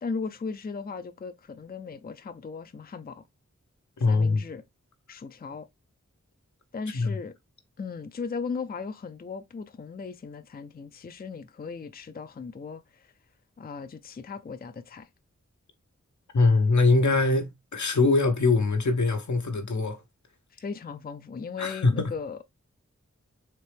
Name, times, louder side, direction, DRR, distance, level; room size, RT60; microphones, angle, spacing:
voice 1, 0.0-3.2 4.1-4.6 5.1-5.7 6.7-7.3 7.8-13.1 13.6-15.1 20.5-22.4, left 5 dB, 35° left, 0.4 m, -37 dB
voice 2, 4.0-4.4 6.9-7.2 16.3-20.0 21.6-22.1, left 3 dB, 80° left, 0.9 m, -22 dB
4.4 x 2.9 x 3.2 m
wide cardioid pair, 40°, 29 cm